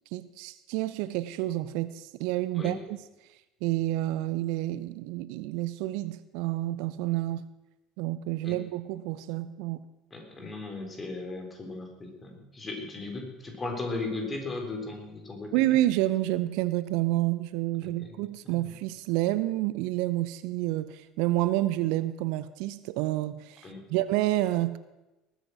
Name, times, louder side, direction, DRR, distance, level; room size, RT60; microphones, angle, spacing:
voice 1, 0.1-3.0 3.6-7.5 8.0-9.8 15.5-24.8, right 16 dB, 60° right, 15 dB, 0.6 m, -29 dB
voice 2, 10.1-15.5 17.8-17.9 18.4-18.6 23.6-23.8, left 3 dB, 25° left, 3 dB, 3.9 m, -36 dB
19.5 x 9.1 x 6.2 m, 1.0 s
figure-of-eight pair, 65°, 0 cm